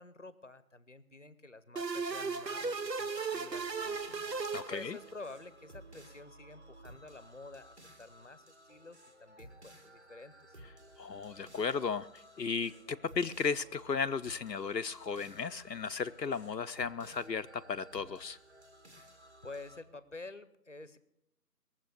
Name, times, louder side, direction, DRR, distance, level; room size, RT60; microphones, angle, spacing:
voice 1, 0.0-4.0 4.7-10.6 19.4-21.0, left 3 dB, 50° left, 15 dB, 0.8 m, -50 dB
sound 1, 1.8-5.3, right 4 dB, 90° right, 1.0 m, -36 dB
sound 2, 3.5-19.8, right 1 dB, 45° right, 2.2 m, -56 dB
voice 2, 4.5-5.0 11.0-18.4, left 5 dB, 85° left, 9 dB, 0.7 m, -35 dB
19.5 x 7.5 x 8.2 m, 0.79 s
figure-of-eight pair, 170°, 49 cm